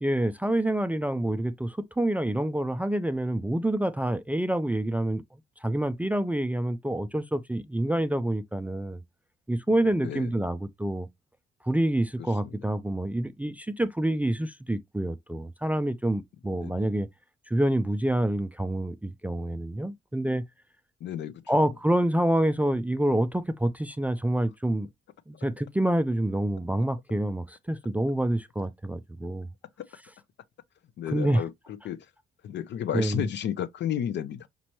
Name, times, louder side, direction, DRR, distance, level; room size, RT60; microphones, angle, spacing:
voice 1, 0.0-5.2 5.6-9.0 9.5-11.1 11.6-17.1 17.5-20.4 21.5-24.9 25.3-29.5 31.1-31.4 32.9-33.3, right 1 dB, 10° right, 0.3 m, -27 dB
voice 2, 10.0-10.3 12.2-12.6 16.6-16.9 21.0-21.7 29.8-29.9 31.0-31.5 31.8-32.1 32.4-34.5, left 9 dB, 65° left, 0.5 m, -32 dB
5.2 x 3.0 x 2.9 m
cardioid pair, 90°, 20 cm